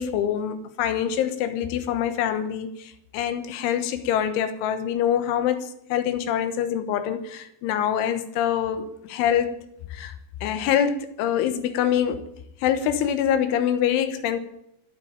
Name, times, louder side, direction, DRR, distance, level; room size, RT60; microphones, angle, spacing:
voice 1, 0.0-9.6 9.9-10.1 10.4-12.2 12.6-14.4, left 9 dB, 90° left, 3.6 m, -25 dB
24.5 x 8.6 x 5.1 m
omnidirectional pair, 5.3 m